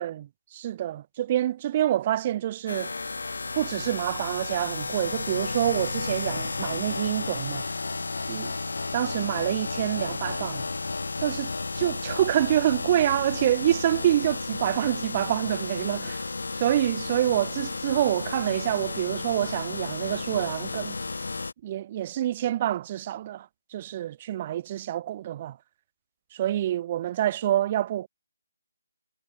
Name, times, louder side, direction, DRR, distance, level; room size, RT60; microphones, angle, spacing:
voice 1, 0.0-2.9 3.5-7.6 8.3-8.5 8.9-10.6 11.2-16.2 16.5-21.0 21.6-23.5 23.7-25.6 26.3-28.1, right 12 dB, 30° right, 0.6 m, -27 dB
sound 1, 2.7-21.5, left 3 dB, 70° left, 0.3 m, -33 dB
figure-of-eight pair, 155°, 0 cm